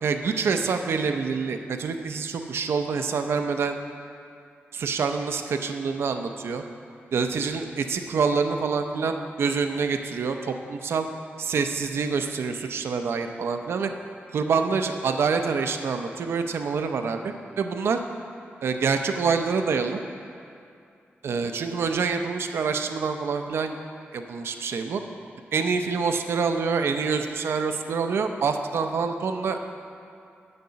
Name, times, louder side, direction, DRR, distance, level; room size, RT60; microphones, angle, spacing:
voice 1, 0.0-3.8 4.7-6.6 7.1-11.1 11.4-13.9 14.3-18.0 18.6-20.0 21.2-23.8 24.1-25.0 25.5-29.6, right 5 dB, 75° right, 6 dB, 0.6 m, -26 dB
8.3 x 6.6 x 5.7 m, 2.5 s
wide cardioid pair, 170°, 4 cm